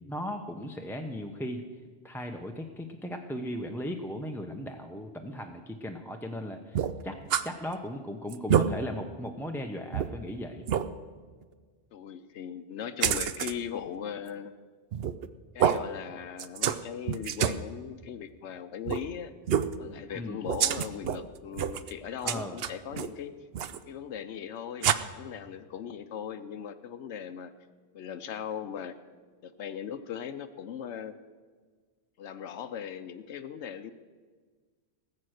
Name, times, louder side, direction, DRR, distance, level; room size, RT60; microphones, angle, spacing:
voice 1, 0.1-1.6 2.0-7.2 7.4-10.7 20.1-20.4 22.2-22.6, equal, 5° left, 3 dB, 0.6 m, -37 dB
sound 1, 6.7-7.5 7.9-8.0 8.3-8.7 9.3-9.4 9.9-10.1 10.7-10.9 13.0-13.5 14.9-15.3 15.6-15.8 16.4-16.8 17.1-17.6 18.9-19.0 19.5-19.7 20.5-21.2 21.5-21.9 22.3-23.1 23.5-23.8 24.8-24.9, right 9 dB, 65° right, 0.8 m, -27 dB
voice 2, 11.9-14.5 15.5-19.3 19.8-23.3 23.9-27.5 27.9-29.0 29.4-31.2 32.2-33.9, left 8 dB, 85° left, 10 dB, 1.0 m, -39 dB
19.0 x 7.6 x 6.4 m, 1.5 s
omnidirectional pair, 1.2 m